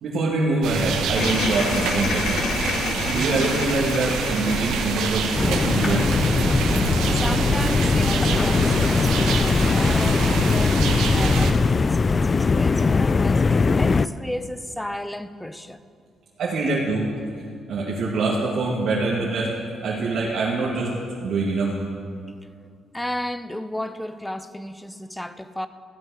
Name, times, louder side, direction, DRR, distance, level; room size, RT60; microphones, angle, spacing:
voice 1, 0.0-2.5 3.0-6.1 16.4-17.2 17.7-19.5 19.8-21.0 21.2-21.7, right 3 dB, 65° right, -6 dB, 2.3 m, -24 dB
sound 1, 0.6-11.5, right 5 dB, 90° right, 1.3 m, -26 dB
sound 2, 1.1-6.6, left 5 dB, 65° left, 0.9 m, -30 dB
sound 3, 5.3-14.1, left 4 dB, 35° left, 0.3 m, -20 dB
voice 2, 7.1-13.5 13.8-15.8 22.9-25.7, left 1 dB, 5° left, 11 dB, 0.7 m, -33 dB
14.5 x 9.8 x 6.5 m, 2.2 s
cardioid pair, 90°, 0 cm